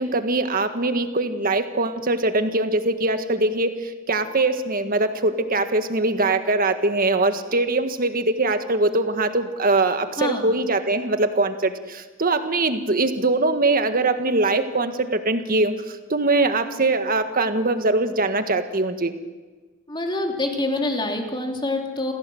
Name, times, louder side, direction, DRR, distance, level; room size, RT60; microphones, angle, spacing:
voice 1, 0.0-15.7 16.1-19.1, right 2 dB, 45° right, 8 dB, 1.6 m, -22 dB
voice 2, 10.2-10.5 19.9-22.1, left 2 dB, 25° left, 2 dB, 3.1 m, -26 dB
26.5 x 16.5 x 7.9 m, 1.3 s
head